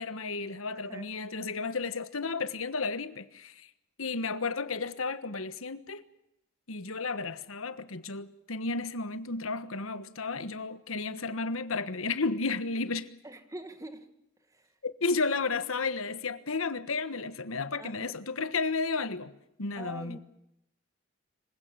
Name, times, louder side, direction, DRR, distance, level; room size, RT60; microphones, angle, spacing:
voice 1, 0.0-3.7 4.0-6.0 6.7-13.1 14.8-19.3 19.6-20.2, left 4 dB, 75° left, 1.4 m, -33 dB
voice 2, 0.8-1.1 13.2-14.1 14.5-14.7 17.8-18.2 19.8-20.2, right 1 dB, 15° right, 2.1 m, -44 dB
26.0 x 16.5 x 9.0 m
head